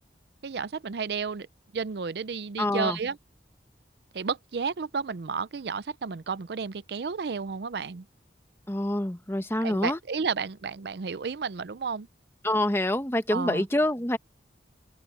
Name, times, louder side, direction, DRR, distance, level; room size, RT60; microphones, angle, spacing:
voice 1, 0.4-1.5 1.7-3.2 4.1-8.0 9.6-12.1 13.3-13.7, right 5 dB, 70° right, 0.5 m, -32 dB
voice 2, 2.6-3.0 8.7-10.0 12.4-14.2, left 1 dB, 15° left, 1.0 m, -26 dB
open air
head